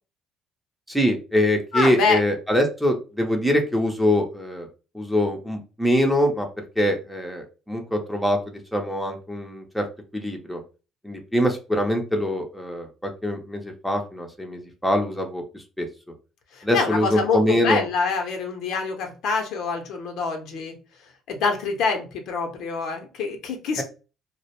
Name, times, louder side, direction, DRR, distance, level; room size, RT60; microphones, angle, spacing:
voice 1, 0.9-4.7 4.9-6.5 6.8-9.9 10.1-10.6 11.0-15.9 16.6-17.8 23.8-23.9, equal, ahead, 2 dB, 0.6 m, -24 dB
voice 2, 1.7-2.2 16.5-20.8 21.3-23.8, left 4 dB, 75° left, 4 dB, 0.6 m, -25 dB
2.4 x 2.0 x 2.9 m, 0.32 s
cardioid pair, 100°, 0 cm